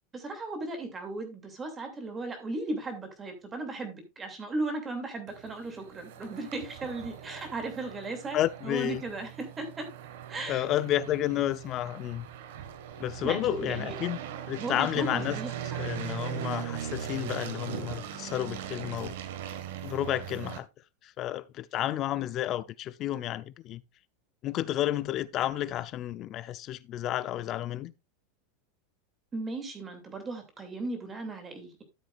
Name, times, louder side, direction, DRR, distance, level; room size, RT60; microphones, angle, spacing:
voice 1, 0.1-9.9 10.3-10.7 13.2-13.9 14.5-16.0 29.3-31.8, right 2 dB, 15° right, 2.6 m, -36 dB
sound 1, 5.3-20.6, right 10 dB, 70° right, 1.7 m, -40 dB
voice 2, 8.3-9.0 10.5-12.3 13.0-14.2 14.5-15.4 15.8-19.1 19.8-20.7 21.0-23.8 24.4-27.9, left 13 dB, 30° left, 0.6 m, -31 dB
13.0 x 7.6 x 2.5 m
supercardioid pair, 165°, 0 cm